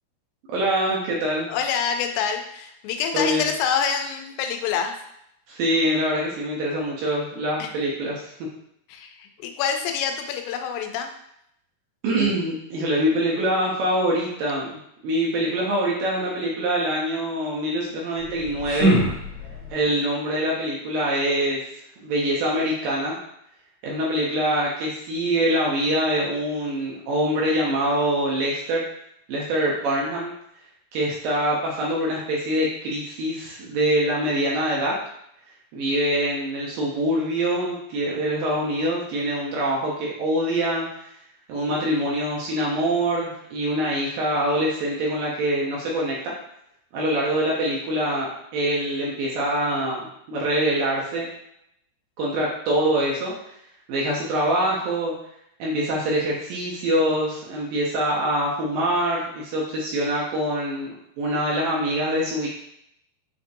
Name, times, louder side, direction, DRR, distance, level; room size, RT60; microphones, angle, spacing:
voice 1, 0.5-1.5 3.1-3.5 5.5-8.3 12.0-14.8 15.0-18.9 19.7-21.6 22.0-23.2 23.8-28.8 29.3-30.3 30.9-35.0 35.7-41.1 41.5-46.3 46.9-51.3 52.2-53.3 53.9-55.1 55.6-62.5, right 1 dB, 75° right, -4 dB, 2.1 m, -24 dB
voice 2, 1.5-4.9 7.6-7.7 8.9-11.1, left 7 dB, 90° left, 5 dB, 2.6 m, -26 dB
sound 1, 18.2-19.8, right 1 dB, 65° left, 2.1 m, -24 dB
6.7 x 2.6 x 2.6 m, 0.76 s
omnidirectional pair, 4.6 m